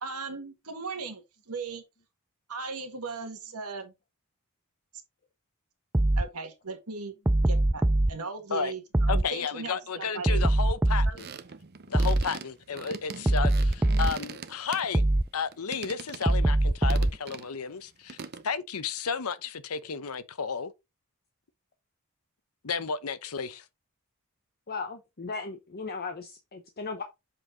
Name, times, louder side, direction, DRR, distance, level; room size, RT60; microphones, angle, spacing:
voice 1, 0.0-1.8 2.5-3.9 6.2-7.1 7.5-10.5 11.1-11.2, right 4 dB, 85° right, 1.8 m, -37 dB
sound 1, 5.9-6.3 7.3-8.1 8.9-9.3 10.3-11.2 11.9-12.3 13.3-14.2 14.9-15.3 16.3-17.2, right 1 dB, 10° right, 0.3 m, -22 dB
voice 2, 9.1-11.3 11.9-15.0 15.3-18.2 18.4-20.7 22.6-23.6, left 6 dB, 75° left, 0.8 m, -33 dB
sound 2, 11.2-15.2 15.5-16.4 16.9-17.5 18.1-18.5, right 5 dB, 45° right, 0.7 m, -41 dB
voice 3, 24.7-27.0, left 4 dB, 45° left, 0.8 m, -37 dB
7.6 x 4.3 x 3.8 m
head